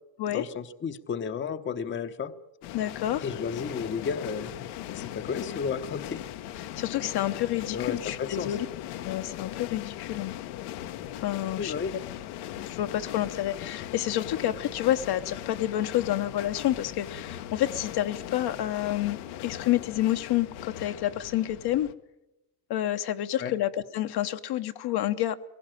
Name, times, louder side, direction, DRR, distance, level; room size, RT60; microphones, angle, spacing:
voice 1, 0.3-2.3 3.2-4.5 4.9-6.3 7.7-8.6 11.5-11.9 23.4-23.5, left 6 dB, 25° left, 10 dB, 0.8 m, -33 dB
sound 1, 2.6-21.9, left 12 dB, 85° left, 1.3 m, -39 dB
voice 2, 2.7-3.3 6.8-8.7 9.0-10.3 11.1-11.7 12.7-21.9 22.7-25.4, left 13 dB, 50° left, 9 dB, 0.9 m, -29 dB
21.0 x 17.0 x 9.0 m, 0.96 s
cardioid pair, 125°, 50 cm